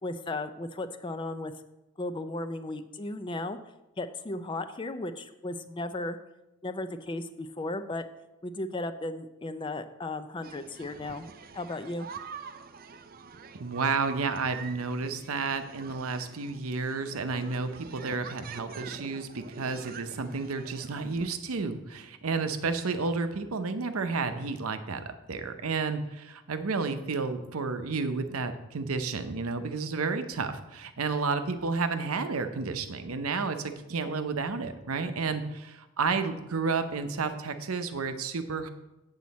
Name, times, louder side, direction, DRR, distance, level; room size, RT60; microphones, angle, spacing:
voice 1, 0.0-1.5 2.0-3.6 4.0-6.2 6.6-8.0 8.4-11.3 11.5-12.1, left 2 dB, 20° left, 10 dB, 0.4 m, -35 dB
sound 1, 10.4-21.3, right 5 dB, 40° right, 0.4 m, -46 dB
voice 2, 13.6-38.7, right 4 dB, 80° right, 9 dB, 0.7 m, -31 dB
7.7 x 7.2 x 4.1 m, 0.98 s
head